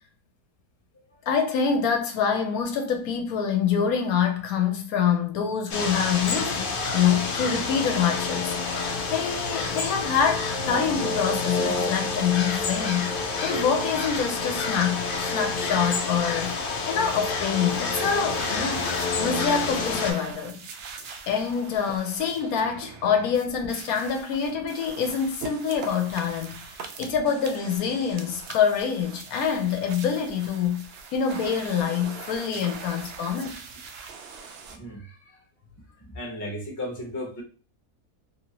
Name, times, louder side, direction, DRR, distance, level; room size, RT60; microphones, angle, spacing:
voice 1, 1.3-20.6 21.3-33.6, left 7 dB, 75° left, 1.0 m, -26 dB
sound 1, 5.7-20.1, left 4 dB, 90° left, 0.4 m, -28 dB
sound 2, 18.4-34.8, right 5 dB, 80° right, 0.5 m, -42 dB
voice 2, 34.7-35.4 36.0-37.4, left 1 dB, 20° left, 0.6 m, -36 dB
2.7 x 2.7 x 2.9 m
omnidirectional pair, 1.6 m